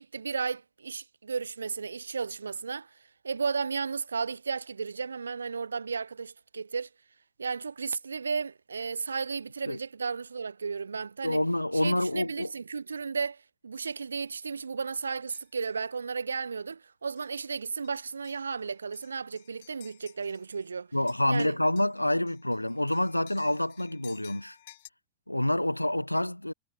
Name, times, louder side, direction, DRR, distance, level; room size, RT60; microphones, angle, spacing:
voice 1, 0.0-2.9 3.2-6.9 7.4-11.4 11.7-20.9 21.3-21.6, right 5 dB, 75° right, 2.3 m, -34 dB
voice 2, 11.2-12.5 20.9-24.6 25.3-26.5, left 1 dB, 85° left, 0.7 m, -27 dB
sound 1, 15.3-15.8 16.3-16.5 17.2-17.5 17.8-20.7 20.9-24.9, left 15 dB, 55° left, 5.8 m, -56 dB
figure-of-eight pair, 90°, 0 cm